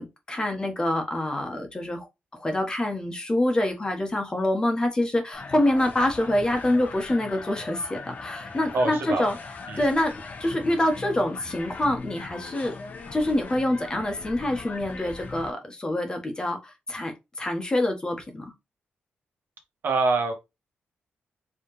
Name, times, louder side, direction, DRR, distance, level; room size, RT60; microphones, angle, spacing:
voice 1, 0.0-2.1 2.3-9.4 9.8-10.1 10.4-12.7 13.1-18.4, left 1 dB, 20° left, 1.3 m, -26 dB
sound 1, 5.3-15.5, left 4 dB, 50° left, 1.1 m, -40 dB
voice 2, 8.7-9.3 9.7-9.8 19.8-20.3, right 3 dB, 70° right, 1.3 m, -24 dB
4.7 x 3.3 x 3.1 m
wide cardioid pair, 130°, 4 cm